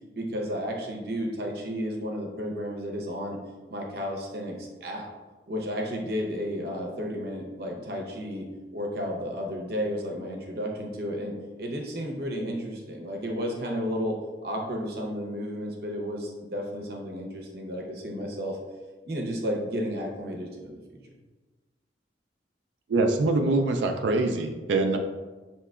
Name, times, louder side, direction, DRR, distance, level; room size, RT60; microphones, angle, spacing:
voice 1, 0.1-3.4 3.7-5.1 5.5-14.2 14.4-18.6 19.1-21.0, equal, 60° right, 0 dB, 0.8 m, -32 dB
voice 2, 22.9-25.0, right 2 dB, 85° right, 5 dB, 0.4 m, -24 dB
5.6 x 2.9 x 2.4 m, 1.3 s
head